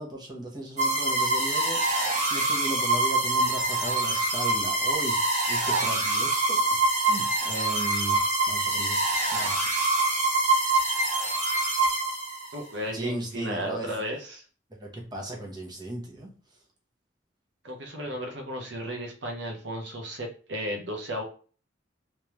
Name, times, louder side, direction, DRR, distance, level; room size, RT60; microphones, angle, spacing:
voice 1, 0.0-1.8 2.3-5.2 5.5-6.6 6.9-8.2 8.5-9.6 12.9-13.9 14.7-16.3, right 1 dB, 25° right, -1 dB, 1.0 m, -36 dB
sound 1, 0.8-12.6, right 2 dB, 40° right, 1.2 m, -25 dB
voice 2, 12.5-14.4 17.6-21.2, equal, 70° right, 2 dB, 0.9 m, -34 dB
3.3 x 3.3 x 3.0 m, 0.38 s
head